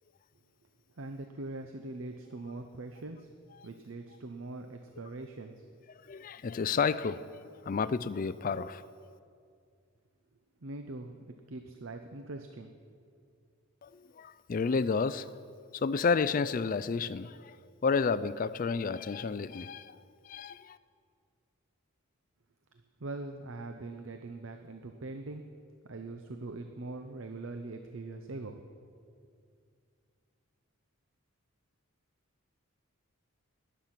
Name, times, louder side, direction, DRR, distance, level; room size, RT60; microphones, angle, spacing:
voice 1, 1.0-3.3 3.6-5.7 10.6-11.1 11.5-12.7 23.0-25.5 25.9-28.6, right 2 dB, 60° right, 6 dB, 0.7 m, -42 dB
voice 2, 6.1-7.2 7.7-9.2 13.8-15.3 15.7-17.6 17.8-20.0 20.2-20.8, left 5 dB, 40° left, 16 dB, 0.3 m, -31 dB
19.5 x 8.1 x 5.8 m, 2.3 s
head